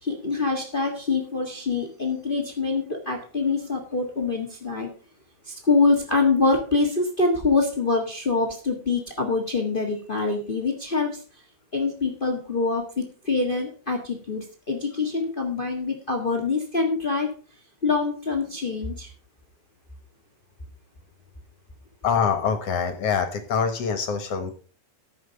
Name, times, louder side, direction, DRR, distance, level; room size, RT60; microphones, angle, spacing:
voice 1, 0.0-4.9 5.4-11.4 11.7-17.3 17.8-19.1, left 3 dB, 80° left, 3 dB, 0.4 m, -25 dB
voice 2, 22.0-24.5, left 6 dB, 55° left, 8 dB, 1.9 m, -24 dB
14.0 x 6.5 x 5.2 m, 0.38 s
omnidirectional pair, 3.9 m